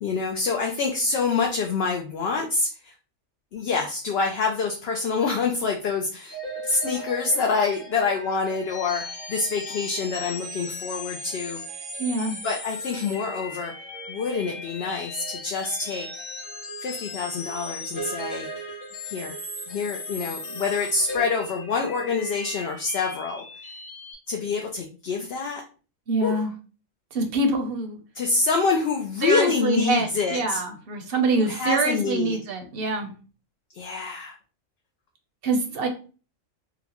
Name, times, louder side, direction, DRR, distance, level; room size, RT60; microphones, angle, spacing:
voice 1, 0.0-2.9 3.5-6.4 6.6-11.8 12.4-13.7 14.1-16.1 16.8-18.5 19.0-19.4 19.7-23.4 24.3-25.6 26.2-26.5 28.1-30.6 31.4-32.4 33.7-34.3, left 4 dB, 60° left, 2 dB, 0.7 m, -26 dB
sound 1, 6.3-24.1, left 1 dB, 80° left, 1.6 m, -37 dB
voice 2, 12.0-12.4 26.1-26.5 27.1-28.0 29.2-33.1 35.4-35.9, right 2 dB, 55° right, 4 dB, 0.8 m, -25 dB
4.0 x 2.1 x 2.9 m, 0.36 s
omnidirectional pair, 1.3 m